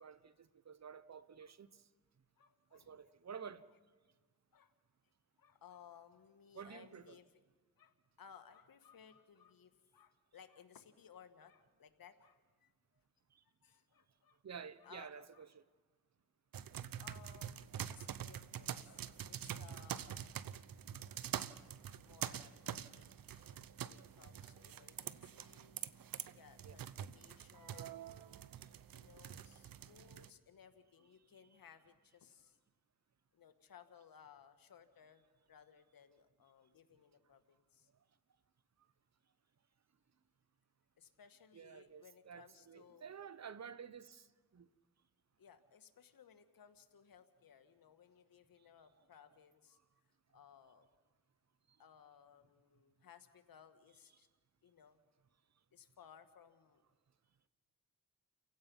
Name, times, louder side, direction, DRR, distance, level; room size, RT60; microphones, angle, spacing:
voice 1, 0.0-1.8 2.7-3.7 6.5-7.1 14.4-15.6 26.6-26.7 41.5-44.3 44.5-44.7, right 7 dB, 50° right, 1.0 m, -51 dB
voice 2, 2.4-3.1 4.5-4.7 5.4-7.4 7.8-13.0 13.6-14.4 14.8-15.4 17.0-20.3 22.0-25.8 26.3-28.2 28.9-32.6 33.3-37.9 41.0-43.1 45.4-49.8 50.3-50.9 51.8-54.3 54.6-55.0 55.7-56.8, left 8 dB, 80° left, 1.6 m, -62 dB
sound 1, 16.5-30.3, right 9 dB, 75° right, 0.8 m, -46 dB
30.0 x 16.5 x 5.5 m
cardioid pair, 60°, 35 cm